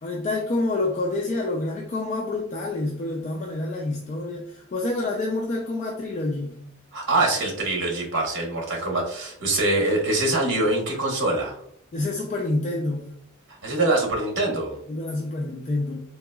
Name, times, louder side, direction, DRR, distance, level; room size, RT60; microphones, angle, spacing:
voice 1, 0.0-6.6 11.9-13.1 14.9-16.0, left 2 dB, 35° left, 0 dB, 0.4 m, -27 dB
voice 2, 6.9-11.5 13.6-14.8, right 2 dB, 60° right, 0 dB, 1.1 m, -24 dB
3.8 x 2.9 x 2.3 m, 0.66 s
head